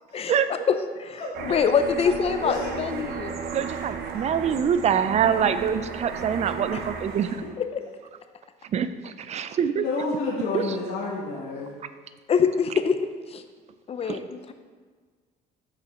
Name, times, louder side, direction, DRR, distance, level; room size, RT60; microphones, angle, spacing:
voice 1, 0.7-3.3 6.7-6.8 7.6-7.8 12.3-13.4 13.9-14.5, left 6 dB, 35° left, 9 dB, 0.6 m, -25 dB
sound 1, 1.3-7.5, right 4 dB, 70° right, 0.8 m, -34 dB
voice 2, 3.5-7.3 8.7-9.9 10.5-10.8 14.1-14.2, right 8 dB, 40° right, 12 dB, 0.4 m, -25 dB
voice 3, 9.7-11.7, left 3 dB, 70° left, -5 dB, 1.2 m, -29 dB
7.3 x 5.4 x 4.2 m, 1.5 s
cardioid pair, 110°, 17 cm